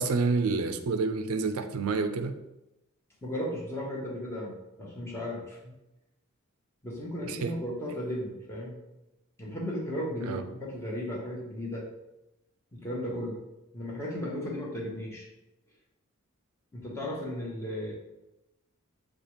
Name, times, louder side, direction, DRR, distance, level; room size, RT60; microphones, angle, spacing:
voice 1, 0.0-2.4 7.2-7.6 10.2-10.4, right 4 dB, 80° right, 8 dB, 0.4 m, -28 dB
voice 2, 3.2-4.5 4.8-5.7 6.8-8.8 9.4-11.8 12.7-13.4 13.7-15.3 16.7-17.9, left 1 dB, 15° left, -3 dB, 1.0 m, -35 dB
6.7 x 2.4 x 3.0 m, 0.93 s
head